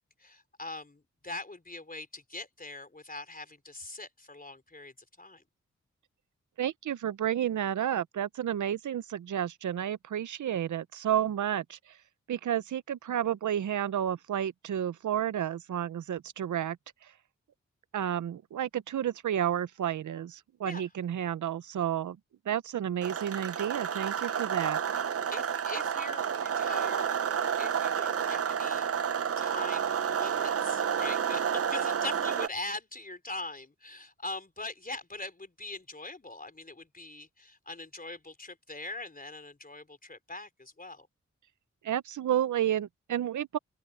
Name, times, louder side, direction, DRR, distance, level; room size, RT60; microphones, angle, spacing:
voice 1, 0.0-5.4 20.6-20.8 25.3-28.9 29.4-41.1, left 2 dB, 30° left, 4.2 m, -42 dB
voice 2, 6.6-12.0 12.3-16.8 17.0-17.1 17.9-22.2 22.5-24.8 41.8-43.6, right 10 dB, 85° right, 0.8 m, -31 dB
sound 1, 23.0-32.5, right 7 dB, 50° right, 0.8 m, -30 dB
open air
cardioid pair, 45°, 29 cm